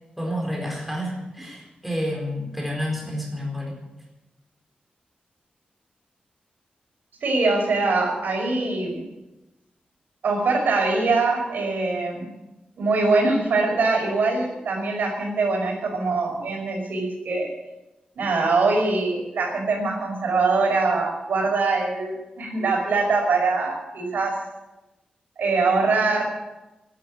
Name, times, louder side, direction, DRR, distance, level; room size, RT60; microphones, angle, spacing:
voice 1, 0.2-3.8, equal, 5° right, -1 dB, 4.2 m, -29 dB
voice 2, 7.2-9.0 10.2-12.3 12.8-17.5 18.2-24.4 25.4-26.2, right 3 dB, 85° right, 1 dB, 5.4 m, -23 dB
13.0 x 11.0 x 9.7 m, 1.0 s
wide cardioid pair, 165°, 3 cm